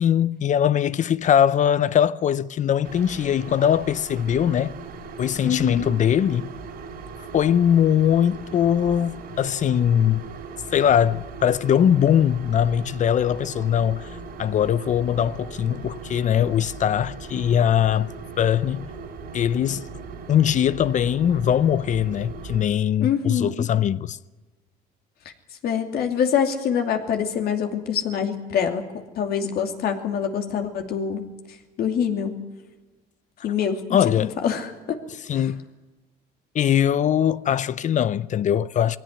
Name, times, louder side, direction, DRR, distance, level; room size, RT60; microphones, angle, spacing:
voice 1, 0.0-4.8 5.2-6.5 7.3-10.3 10.7-14.1 14.4-18.9 19.3-19.8 20.3-24.2 33.9-34.3 35.3-35.6 36.5-39.0, left 9 dB, 45° left, 0.6 m, -21 dB
sound 1, 2.8-22.6, right 4 dB, 70° right, 4.0 m, -38 dB
voice 2, 5.4-5.9 23.0-23.7 25.6-31.3 31.8-32.3 33.4-35.0 35.3-35.4, left 7 dB, 65° left, 2.7 m, -25 dB
21.0 x 16.5 x 9.7 m
cardioid pair, 110°, 17 cm